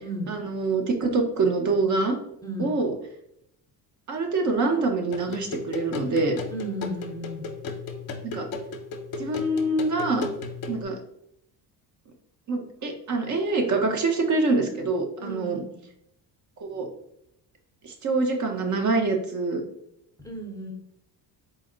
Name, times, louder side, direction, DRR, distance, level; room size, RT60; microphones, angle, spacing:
voice 1, 0.3-2.1 2.6-2.9 4.1-6.4 8.2-8.5 9.2-10.2 10.7-11.0 12.5-15.6 16.6-16.9 17.8-19.6, right 3 dB, 45° right, 4 dB, 0.8 m, -25 dB
sound 1, 5.1-10.8, left 4 dB, 55° left, 0.7 m, -35 dB
voice 2, 6.5-7.5 15.2-15.8 20.2-20.7, equal, 10° left, -1 dB, 0.6 m, -34 dB
4.1 x 2.1 x 3.8 m, 0.74 s
cardioid pair, 135°, 41 cm